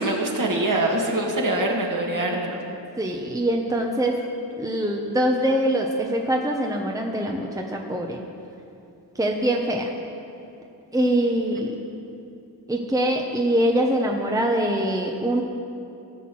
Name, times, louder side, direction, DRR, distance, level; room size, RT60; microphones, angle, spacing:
voice 1, 0.0-2.6, right 1 dB, 45° right, -1 dB, 2.2 m, -24 dB
voice 2, 3.0-4.2 4.6-8.2 9.1-9.9 10.9-11.8 12.7-15.4, right 1 dB, 10° right, 1 dB, 1.0 m, -23 dB
16.5 x 6.8 x 6.2 m, 2.7 s
cardioid pair, 70°, 43 cm